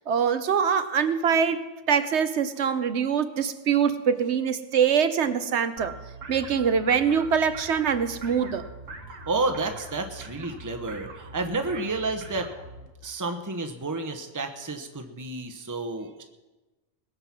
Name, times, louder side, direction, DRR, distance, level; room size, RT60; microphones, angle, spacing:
voice 1, 0.1-5.9 6.3-8.6, right 7 dB, 65° right, 11 dB, 1.0 m, -24 dB
sound 1, 5.8-12.9, right 2 dB, 80° right, 1.8 m, -43 dB
voice 2, 9.3-12.5 13.0-16.2, right 3 dB, 15° right, 6 dB, 1.0 m, -30 dB
20.5 x 7.8 x 6.0 m, 1.1 s
omnidirectional pair, 1.3 m